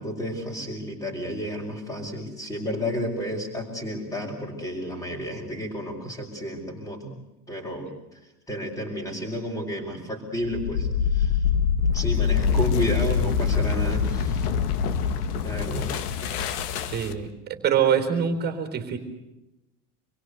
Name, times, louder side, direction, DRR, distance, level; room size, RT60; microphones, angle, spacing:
voice 1, 0.0-7.1 7.5-7.9 8.5-11.4 11.9-14.5 15.4-15.9, equal, 10° left, -5 dB, 4.9 m, -31 dB
sound 1, 10.4-17.3, left 7 dB, 90° left, 2.1 m, -25 dB
voice 2, 16.9-19.0, right 8 dB, 20° right, 7 dB, 3.8 m, -24 dB
27.5 x 23.0 x 8.1 m, 0.96 s
supercardioid pair, 180°, 44 cm